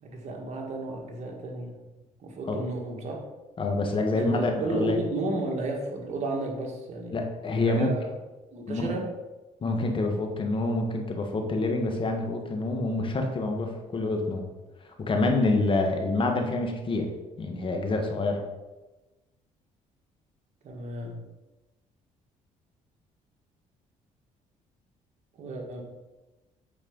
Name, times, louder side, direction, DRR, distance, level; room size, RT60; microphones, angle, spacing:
voice 1, 0.0-1.8 2.2-3.2 4.1-7.2 7.7-8.1 8.5-9.1 20.6-21.2 25.4-25.8, right 2 dB, 60° right, 1 dB, 1.9 m, -33 dB
voice 2, 3.6-5.0 7.1-7.9 8.7-8.9 9.6-14.5 14.8-17.1 17.4-18.4, left 2 dB, 40° left, 3 dB, 1.5 m, -27 dB
8.7 x 4.5 x 5.4 m, 1.1 s
cardioid pair, 95°, 13 cm